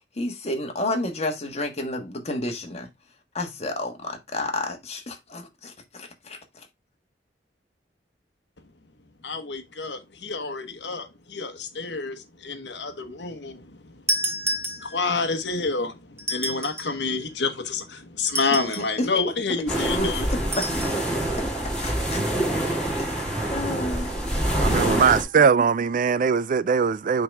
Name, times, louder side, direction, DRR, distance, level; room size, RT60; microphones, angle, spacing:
voice 1, 0.2-2.9 3.3-6.4 19.0-19.1 19.8-20.1 20.6-20.7 23.0-24.2, left 1 dB, 40° left, 1.5 m, -30 dB
voice 2, 9.2-13.9 14.3-14.5 14.8-20.3, left 4 dB, 75° left, 1.1 m, -29 dB
sound 1, 14.1-15.2 16.2-17.0 18.2-19.0 20.5-21.0, right 1 dB, 15° right, 0.9 m, -30 dB
sound 2, 19.7-25.2, right 1 dB, 5° left, 3.0 m, -26 dB
voice 3, 24.5-27.2, right 6 dB, 50° right, 0.4 m, -20 dB
8.7 x 3.9 x 3.4 m
head